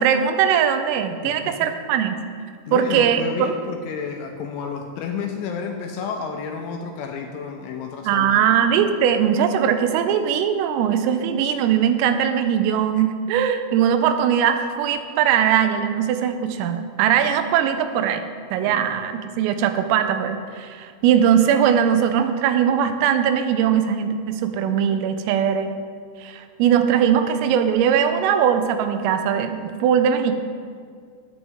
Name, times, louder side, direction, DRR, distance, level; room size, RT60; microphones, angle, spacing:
voice 1, 0.0-2.2 2.7-3.5 8.1-18.2 18.5-25.7 26.2-30.3, right 8 dB, 85° right, 8 dB, 3.3 m, -20 dB
voice 2, 1.2-1.7 2.7-8.5 18.6-19.0, left 6 dB, 85° left, 3 dB, 2.8 m, -31 dB
13.5 x 9.6 x 3.6 m, 2.1 s
omnidirectional pair, 5.9 m